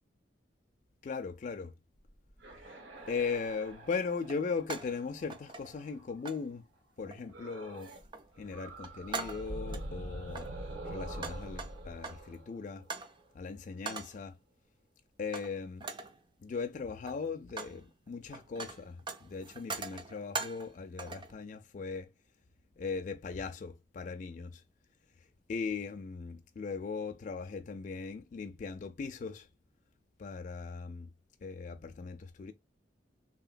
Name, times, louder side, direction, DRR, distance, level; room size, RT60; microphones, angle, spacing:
voice 1, 1.0-1.7 3.1-6.7 7.0-7.9 8.4-10.5 10.9-12.8 13.3-14.4 15.2-15.9 16.4-22.1 22.8-24.6 25.5-29.5 30.2-31.1 31.4-32.5, left 5 dB, 45° left, 0.3 m, -38 dB
sound 1, 2.1-6.2 7.3-8.1 8.3-13.2, right 1 dB, 90° right, 1.2 m, -45 dB
sound 2, 3.0-3.1 4.2-5.0 5.3-5.9 6.2-6.5 7.1-7.4 7.8-8.3 8.6-9.9 10.3-12.3 12.9-13.2 13.8-14.2 15.3-15.5 15.8-16.2 16.9-17.8 18.1-20.7 21.0-21.3, right 4 dB, 25° right, 0.4 m, -42 dB
2.9 x 2.8 x 2.4 m
head